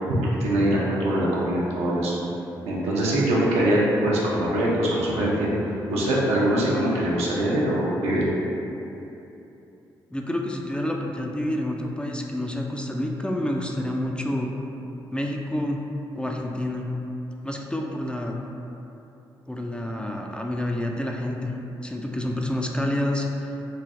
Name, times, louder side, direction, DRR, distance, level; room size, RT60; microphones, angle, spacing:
voice 1, 0.1-2.2 2.7-5.5 5.9-8.2, right 1 dB, 75° right, -6 dB, 0.6 m, -23 dB
voice 2, 10.1-14.5 15.1-15.8 16.1-16.9 17.4-18.4 19.5-21.5 21.8-23.5, left 1 dB, 10° left, 0 dB, 0.3 m, -28 dB
3.2 x 2.6 x 2.4 m, 2.9 s
hypercardioid pair, 40°, 11 cm